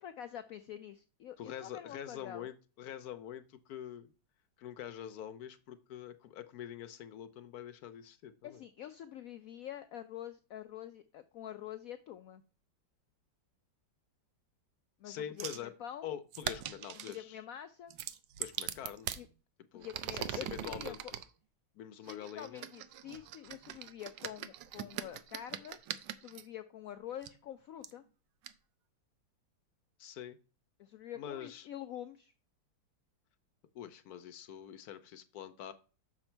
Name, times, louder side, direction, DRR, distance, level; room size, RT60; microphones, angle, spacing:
voice 1, 0.0-2.5 8.4-12.4 15.0-16.1 17.0-17.9 19.2-19.3 19.7-21.1 22.0-25.8 26.2-28.0 30.8-32.3, left 10 dB, 90° left, 10 dB, 0.7 m, -46 dB
voice 2, 1.4-4.1 4.6-8.6 15.0-15.7 16.0-17.4 18.4-19.2 19.7-21.0 21.7-22.7 30.0-30.4 31.2-31.7 33.7-35.7, left 10 dB, 65° left, 11 dB, 1.0 m, -45 dB
sound 1, 15.4-15.7 16.3-17.2 17.9-19.2 19.8-21.3 22.1-26.4 27.2-27.3 27.8-27.9 28.4-28.5, right 11 dB, 80° right, 1.3 m, -41 dB
6.5 x 6.1 x 4.4 m, 0.36 s
omnidirectional pair, 2.0 m